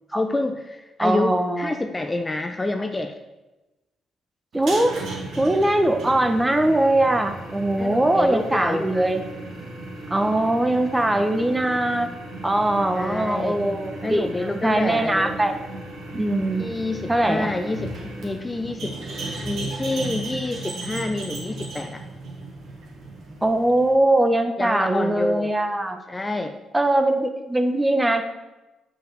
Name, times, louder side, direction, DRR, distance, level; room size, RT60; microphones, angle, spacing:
voice 1, 0.1-3.1 7.8-8.9 12.9-13.6 14.0-15.3 16.6-17.9 18.2-19.0 19.4-22.0 24.6-25.5 26.1-26.5, left 2 dB, 20° left, 6 dB, 0.6 m, -27 dB
voice 2, 1.0-1.8 4.5-5.0 5.4-9.2 10.1-12.1 12.4-15.6 16.1-16.6 17.1-17.5 23.4-26.0 26.7-28.2, right 1 dB, 15° right, 7 dB, 1.0 m, -21 dB
sound 1, 4.5-23.9, right 2 dB, 70° right, 2.5 m, -35 dB
7.2 x 5.9 x 7.0 m, 1.0 s
cardioid pair, 90°, 0 cm